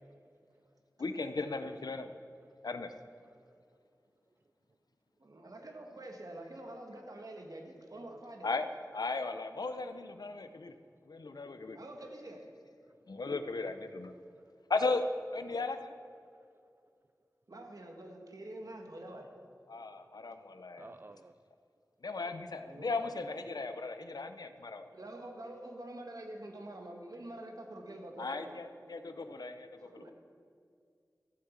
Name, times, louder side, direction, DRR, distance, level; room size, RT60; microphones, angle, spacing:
voice 1, 1.0-2.1 2.6-2.9 8.4-8.7 8.9-10.8 11.1-11.8 13.1-14.2 14.7-16.0 19.7-20.9 22.0-24.9 28.2-30.1, left 3 dB, 85° left, 0.7 m, -36 dB
voice 2, 3.3-3.6 12.9-13.0 16.3-16.4 19.7-19.8 20.8-21.3 29.9-30.0, right 2 dB, 35° right, 0.4 m, -55 dB
voice 3, 5.2-8.5 11.7-12.5 17.5-19.3 20.5-20.6 22.6-23.0 24.9-28.6 29.8-30.1, right 1 dB, 65° right, 1.6 m, -46 dB
13.5 x 7.6 x 7.2 m
wide cardioid pair, 60°, 7 cm